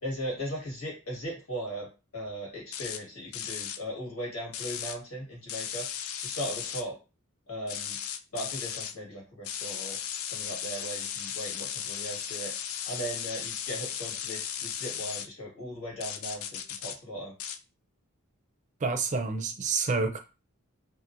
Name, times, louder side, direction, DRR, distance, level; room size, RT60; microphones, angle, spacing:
voice 1, 0.0-1.9 2.1-5.9 6.2-7.0 7.5-8.0 8.3-10.0 10.2-12.5 12.8-17.3, equal, 90° left, 1.5 m, -38 dB
sound 1, 2.7-3.0 3.3-3.8 4.5-5.0 5.5-6.8 7.7-8.9 9.4-15.3 16.0-17.0 17.4-17.6, left 9 dB, 75° left, 0.3 m, -36 dB
voice 2, 18.8-20.2, right 4 dB, 35° right, 0.4 m, -28 dB
2.7 x 2.4 x 2.5 m
head